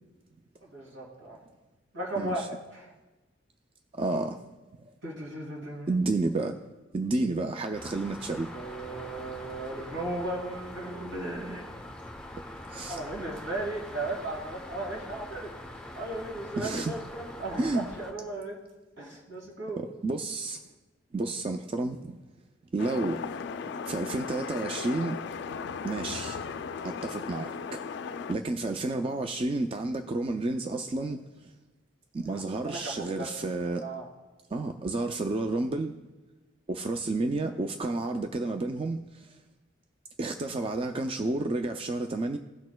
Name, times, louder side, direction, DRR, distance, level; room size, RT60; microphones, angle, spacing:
voice 1, 0.6-1.4 1.9-2.4 2.7-2.9 5.0-6.0 8.5-11.7 12.9-15.5 15.9-18.6 19.0-19.8 32.3-32.4 32.6-33.3 33.8-34.1, right 2 dB, 75° right, 2.8 m, -36 dB
voice 2, 2.2-2.5 3.9-4.4 5.9-6.6 6.9-8.5 12.7-13.0 16.6-16.9 17.6-17.9 19.8-20.6 21.1-22.2 22.7-23.2 23.8-25.2 25.8-26.4 26.8-27.9 28.3-31.2 32.1-33.9 34.5-36.0 36.7-39.4 40.2-42.4, right 2 dB, 30° right, 0.3 m, -30 dB
sound 1, 7.7-18.1, left 1 dB, 5° left, 0.8 m, -43 dB
sound 2, 22.8-28.4, left 5 dB, 60° left, 0.3 m, -36 dB
16.5 x 6.3 x 2.2 m
head